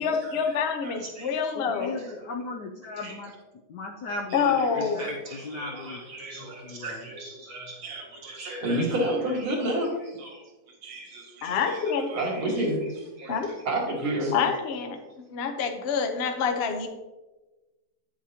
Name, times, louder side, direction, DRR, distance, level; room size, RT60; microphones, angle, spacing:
voice 1, 0.0-2.0 4.3-5.1 11.4-12.1 13.3-13.5 14.3-16.9, left 6 dB, 50° left, 4 dB, 0.7 m, -27 dB
voice 2, 0.8-1.4 1.7-1.9 3.0-3.1 4.3-10.4 10.8-11.8 12.1-13.4 13.7-14.6, right 1 dB, 75° right, -2 dB, 2.7 m, -31 dB
voice 3, 1.6-3.3 3.7-6.0 6.4-7.1, left 3 dB, 65° left, 1 dB, 1.1 m, -37 dB
9.6 x 7.3 x 2.9 m, 1.1 s
omnidirectional pair, 2.3 m